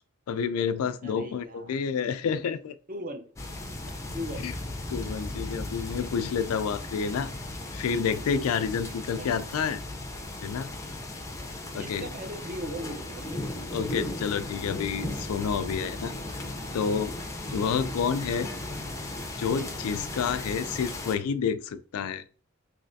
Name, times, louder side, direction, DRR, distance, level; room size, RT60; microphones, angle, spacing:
voice 1, 0.3-2.7 4.4-4.5 4.9-7.3 7.7-9.8 10.4-10.7 11.7-12.1 13.7-16.1 16.7-17.1 17.5-18.5 19.4-22.2, left 6 dB, 85° left, 0.3 m, -29 dB
voice 2, 1.0-1.8 2.9-3.3 4.1-4.5 9.2-9.4 11.7-13.4, equal, 40° right, 0.6 m, -38 dB
sound 1, 3.4-21.2, left 2 dB, 15° left, 0.5 m, -36 dB
3.2 x 3.1 x 2.6 m
head